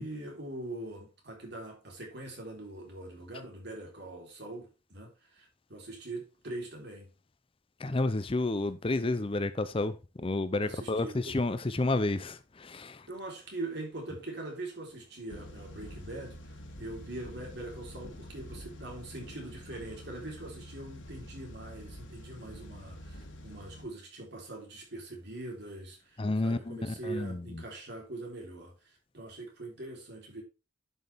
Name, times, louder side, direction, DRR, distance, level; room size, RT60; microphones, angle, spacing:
voice 1, 0.0-7.1 10.6-11.4 13.1-16.5 16.8-30.4, right 2 dB, 60° right, 3.9 m, -42 dB
voice 2, 7.8-13.1 26.2-27.6, left 2 dB, 30° left, 0.6 m, -31 dB
sound 1, 15.3-23.9, equal, 75° left, 2.0 m, -47 dB
10.5 x 6.4 x 3.5 m
head